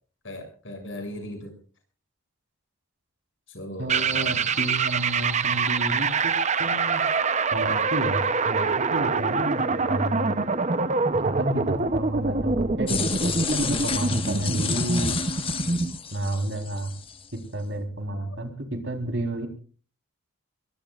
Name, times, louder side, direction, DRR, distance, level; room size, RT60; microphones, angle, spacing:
voice 1, 0.2-1.6 3.5-4.6 18.1-18.3, left 1 dB, 60° left, 5 dB, 6.7 m, -38 dB
voice 2, 3.8-6.3 6.6-7.0 7.5-10.4 11.1-15.1 16.1-16.9 17.5-19.5, right 1 dB, 55° right, 5 dB, 3.8 m, -30 dB
sound 1, 3.9-16.0, right 4 dB, 30° right, 0.7 m, -25 dB
sound 2, 12.9-17.3, left 7 dB, 25° left, 1.3 m, -32 dB
23.5 x 22.0 x 2.4 m, 0.40 s
head